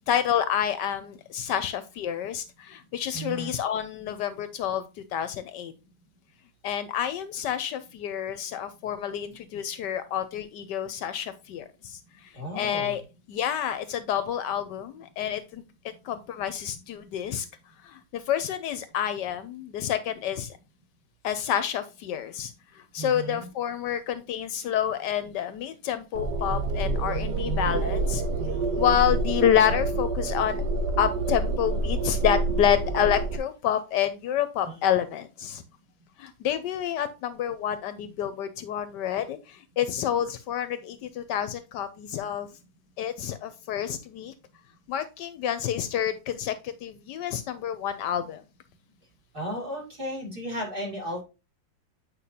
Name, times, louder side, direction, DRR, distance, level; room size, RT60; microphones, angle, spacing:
voice 1, 0.1-4.9 5.1-5.7 6.6-13.0 13.3-15.6 16.0-17.5 17.8-20.6 21.2-28.2 28.8-30.6 31.0-35.6 36.2-42.5 43.0-44.3 44.9-48.4, left 9 dB, 75° left, 12 dB, 1.2 m, -28 dB
voice 2, 3.1-3.5 12.3-12.9 23.0-23.5 34.6-34.8 49.3-51.2, equal, 30° right, -2 dB, 2.6 m, -34 dB
sound 1, 26.1-33.4, right 3 dB, 65° right, 1.4 m, -27 dB
8.4 x 5.2 x 2.8 m, 0.28 s
omnidirectional pair, 2.0 m